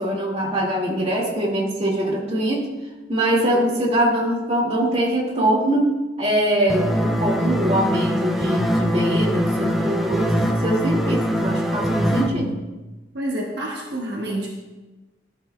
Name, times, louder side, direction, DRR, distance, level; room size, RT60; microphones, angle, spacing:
voice 1, 0.0-2.7 3.1-5.9 6.2-12.6, right 1 dB, 35° right, -2 dB, 2.0 m, -22 dB
sound 1, 6.7-12.3, equal, ahead, 0.6 m, -22 dB
voice 2, 13.1-14.5, right 1 dB, 65° right, -2 dB, 1.3 m, -28 dB
12.5 x 11.0 x 2.2 m, 1.1 s
head